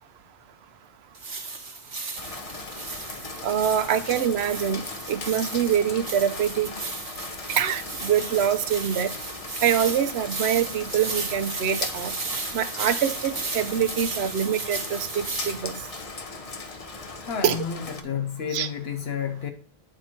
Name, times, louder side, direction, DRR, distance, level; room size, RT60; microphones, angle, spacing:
sound 1, 1.1-16.0, right 3 dB, 55° right, 1.3 m, -35 dB
Rain, 2.2-18.0, left 4 dB, 40° left, 0.7 m, -38 dB
voice 1, 3.4-4.8 5.1-6.7 7.6-9.1 9.6-12.1 12.5-15.8 17.4-17.6 18.5-18.7, right 9 dB, 80° right, 0.9 m, -25 dB
voice 2, 17.2-19.5, left 7 dB, 80° left, 1.1 m, -31 dB
8.7 x 4.5 x 4.3 m
omnidirectional pair, 1.1 m